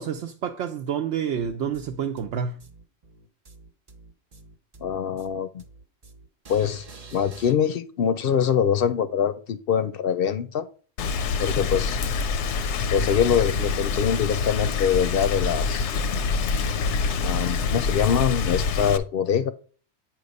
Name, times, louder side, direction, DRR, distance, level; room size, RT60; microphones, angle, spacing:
voice 1, 0.0-2.6, right 7 dB, 75° right, 0.9 m, -29 dB
sound 1, 1.4-7.5, right 3 dB, 40° right, 0.7 m, -47 dB
voice 2, 4.8-5.6 6.5-6.8 7.1-10.7 11.4-12.0 12.9-15.9 17.2-19.5, left 8 dB, 65° left, 0.7 m, -24 dB
Rain, 11.0-19.0, left 5 dB, 85° left, 0.9 m, -26 dB
8.8 x 3.1 x 5.2 m
omnidirectional pair, 1.2 m